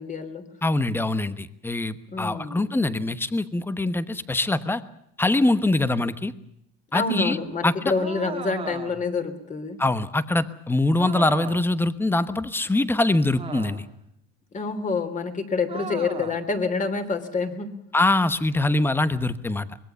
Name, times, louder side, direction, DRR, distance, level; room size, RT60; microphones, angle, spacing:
voice 1, 0.0-0.4 2.1-2.7 6.9-9.8 14.5-17.7, left 4 dB, 25° left, 8 dB, 3.1 m, -27 dB
voice 2, 0.6-4.8 5.2-6.3 6.9-7.4 7.6-7.9 9.8-13.9 17.9-19.7, left 2 dB, 5° left, 14 dB, 1.1 m, -23 dB
sound 1, 7.9-9.2 11.0-11.8 13.4-14.0 15.7-16.5, right 5 dB, 15° right, 1.9 m, -37 dB
24.5 x 21.0 x 6.9 m, 0.75 s
cardioid pair, 145°, 32 cm